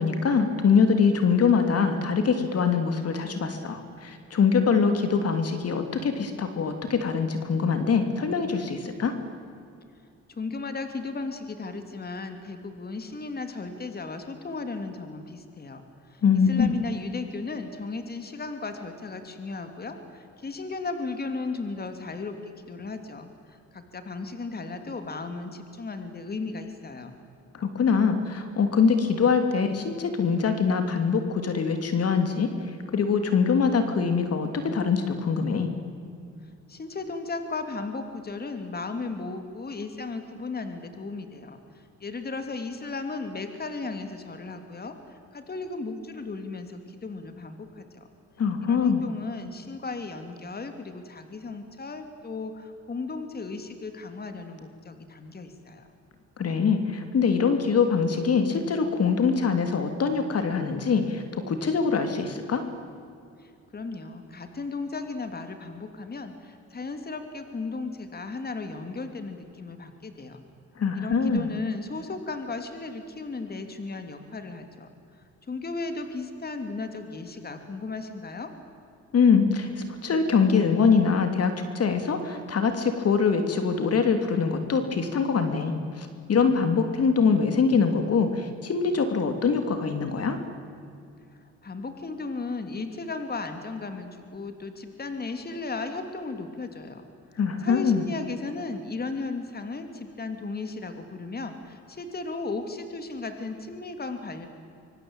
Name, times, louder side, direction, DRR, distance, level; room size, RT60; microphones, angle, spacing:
voice 1, 0.0-9.1 16.2-16.7 27.5-32.5 32.9-35.7 48.4-49.0 56.4-62.6 70.8-71.5 79.1-90.4 97.4-98.0, left 5 dB, 55° left, 7 dB, 3.1 m, -23 dB
voice 2, 10.3-27.2 36.4-48.1 48.6-55.9 63.4-70.4 70.9-75.2 75.5-78.5 91.3-97.1 97.6-104.5, left 3 dB, 30° left, 7 dB, 3.0 m, -35 dB
25.0 x 24.5 x 9.0 m, 2.5 s
cardioid pair, 90°, 30 cm